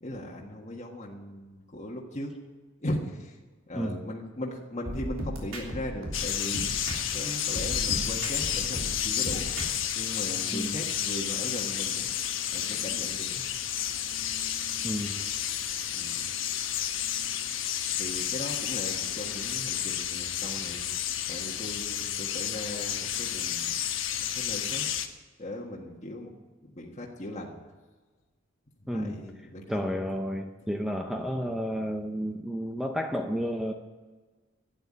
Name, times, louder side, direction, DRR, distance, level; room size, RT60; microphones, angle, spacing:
voice 1, 0.0-2.4 2.8-3.3 3.7-6.7 7.1-9.5 10.0-12.1 12.5-13.4 15.9-16.2 18.0-20.9 21.3-23.8 24.1-24.9 25.4-26.3 26.7-27.5 28.9-29.9, left 1 dB, 35° left, -2 dB, 1.5 m, -38 dB
sound 1, 4.9-7.2 7.5-9.9, equal, 75° right, 3.5 m, -36 dB
sound 2, 6.1-25.1, left 10 dB, 70° left, 1.2 m, -31 dB
voice 2, 14.8-15.3 28.9-29.2 29.7-33.7, equal, ahead, 4 dB, 0.7 m, -31 dB
12.0 x 9.4 x 9.9 m, 1.3 s
head